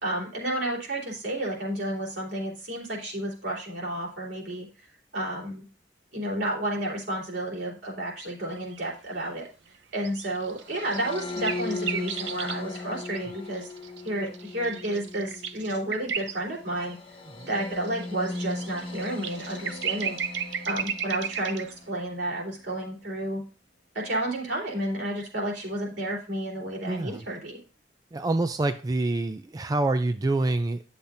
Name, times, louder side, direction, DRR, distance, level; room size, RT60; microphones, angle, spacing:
voice 1, 0.0-4.7 5.1-5.6 6.1-9.5 9.9-13.7 14.0-17.0 17.4-20.2 20.7-23.4 23.9-27.6, right 1 dB, 70° right, -3 dB, 3.6 m, -31 dB
sound 1, 8.6-8.8 10.0-12.6 13.2-16.4 16.9-17.0 17.4-21.7, right 7 dB, 85° right, 0.6 m, -34 dB
sound 2, 10.6-22.0, left 2 dB, 30° left, 0.9 m, -38 dB
voice 2, 26.8-27.2 28.1-30.8, right 2 dB, 20° right, 9 dB, 0.3 m, -26 dB
10.0 x 7.0 x 2.6 m, 0.36 s
head